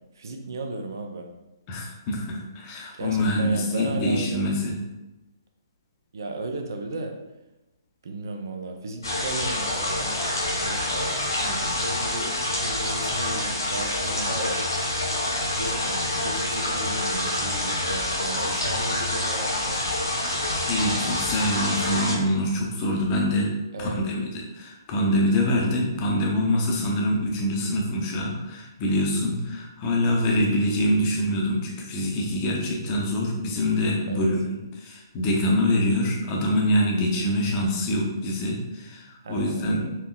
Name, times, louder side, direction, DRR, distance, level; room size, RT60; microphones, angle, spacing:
voice 1, 0.1-1.3 2.9-4.5 6.1-7.2 8.0-10.2 10.6-14.6 15.6-20.0 23.7-24.0 34.1-34.3 39.2-40.0, right 2 dB, 55° right, 4 dB, 0.5 m, -35 dB
voice 2, 1.7-4.7 20.7-23.5 23.8-39.9, left 1 dB, 25° left, 0 dB, 0.7 m, -25 dB
sound 1, 9.0-22.1, left 1 dB, 70° left, 1.3 m, -27 dB
4.3 x 2.9 x 2.3 m, 1.0 s
figure-of-eight pair, 130°, 2 cm